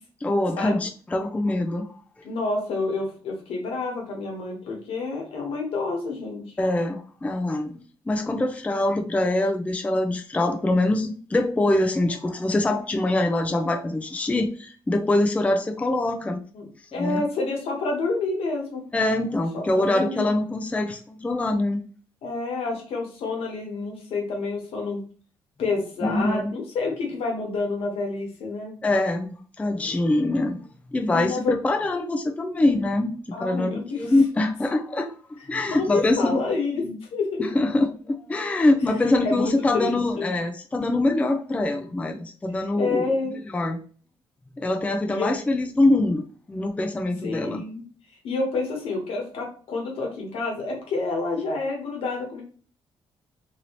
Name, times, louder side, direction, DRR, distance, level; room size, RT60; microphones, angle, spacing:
voice 1, 0.2-1.9 6.6-16.4 16.9-17.2 18.9-21.8 26.0-26.5 28.8-30.6 30.9-36.4 36.7-37.0 37.4-43.2 43.5-43.8 44.6-46.2 46.5-47.6, left 2 dB, 15° left, 5 dB, 0.4 m, -24 dB
voice 2, 2.2-6.5 16.5-18.8 19.5-20.3 22.2-25.0 25.6-28.7 31.1-31.5 33.3-34.1 35.6-36.8 37.1-37.5 39.2-40.3 42.8-43.4 45.1-45.3 47.2-47.8 48.2-52.4, left 3 dB, 80° left, 1 dB, 1.2 m, -28 dB
2.7 x 2.7 x 3.0 m, 0.41 s
cardioid pair, 80°, 10 cm